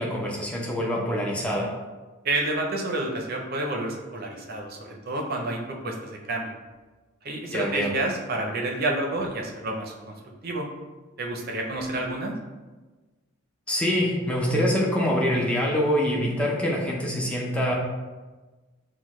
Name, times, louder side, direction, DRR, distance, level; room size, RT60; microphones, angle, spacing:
voice 1, 0.0-1.7 7.5-7.9 13.7-17.7, equal, 5° left, -3 dB, 0.5 m, -25 dB
voice 2, 2.2-6.5 7.2-10.1 10.4-10.7 11.2-12.3, right 2 dB, 45° right, 1 dB, 0.6 m, -29 dB
6.0 x 2.1 x 3.0 m, 1.3 s
head